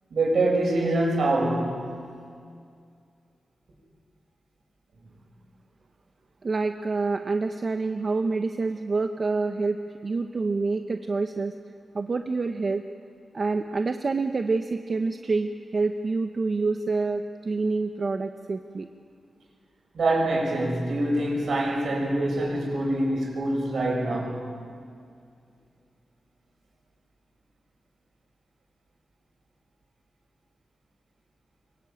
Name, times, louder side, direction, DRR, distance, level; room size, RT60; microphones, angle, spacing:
voice 1, 0.1-1.8 19.9-24.4, right 1 dB, 60° right, 0 dB, 6.9 m, -25 dB
voice 2, 6.4-9.8 10.0-11.5 11.9-12.8 13.3-18.9, right 3 dB, 35° right, 6 dB, 0.8 m, -27 dB
25.5 x 23.5 x 9.0 m, 2.2 s
wide cardioid pair, 175°, 0 cm